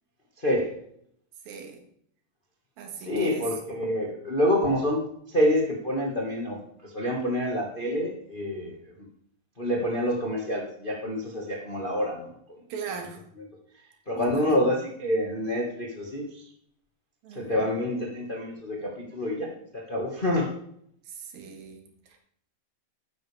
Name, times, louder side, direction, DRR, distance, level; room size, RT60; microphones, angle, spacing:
voice 1, 0.4-0.7 3.0-5.0 5.3-6.6 6.9-8.8 9.6-12.3 14.1-16.4 17.3-19.5 19.7-20.5, left 1 dB, 40° left, -1 dB, 0.7 m, -27 dB
voice 2, 1.5-1.8 2.8-3.5 12.7-13.2 14.2-14.7 17.2-17.7 21.1-22.2, right 6 dB, 85° right, 4 dB, 3.4 m, -39 dB
12.0 x 9.9 x 3.4 m, 0.69 s
omnidirectional pair, 4.1 m